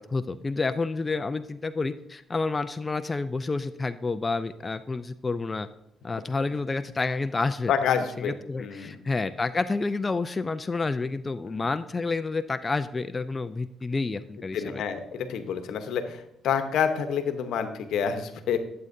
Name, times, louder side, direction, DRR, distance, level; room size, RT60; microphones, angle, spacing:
voice 1, 0.1-5.7 6.0-7.7 8.2-14.8, left 3 dB, 25° left, 10 dB, 0.3 m, -29 dB
voice 2, 7.7-9.0 11.5-11.7 14.5-18.6, left 7 dB, 80° left, 8 dB, 0.9 m, -28 dB
12.0 x 7.7 x 2.6 m, 0.81 s
cardioid pair, 90°, 0 cm